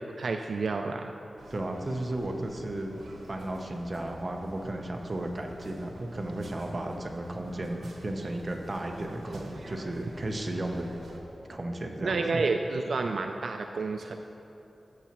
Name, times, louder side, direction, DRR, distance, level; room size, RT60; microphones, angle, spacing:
voice 1, 0.2-1.2 12.0-14.2, right 3 dB, 70° right, 5 dB, 0.3 m, -30 dB
sound 1, 1.4-11.2, right 1 dB, 85° right, 1.0 m, -47 dB
voice 2, 1.5-2.9 3.3-10.9 11.5-12.4, right 1 dB, 35° right, 2 dB, 0.7 m, -34 dB
14.5 x 7.1 x 3.0 m, 2.9 s
wide cardioid pair, 130°, 0 cm